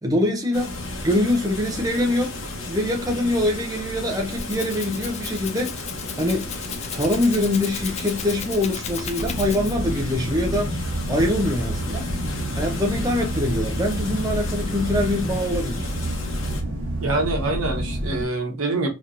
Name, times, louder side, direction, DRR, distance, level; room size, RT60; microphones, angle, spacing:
voice 1, 0.0-0.7 1.0-2.3 2.7-5.7 6.2-6.5 6.9-10.7 11.1-12.1 12.6-15.9, left 1 dB, 15° right, 0.6 m, -24 dB
sound 1, 0.5-16.6, left 2 dB, 75° left, 0.9 m, -34 dB
Rattle (instrument), 4.0-10.0, left 7 dB, 30° left, 0.3 m, -35 dB
sound 2, 9.2-18.2, right 1 dB, 60° right, 1.3 m, -29 dB
voice 2, 17.0-18.9, right 2 dB, 90° right, 1.0 m, -25 dB
3.0 x 2.9 x 2.4 m
head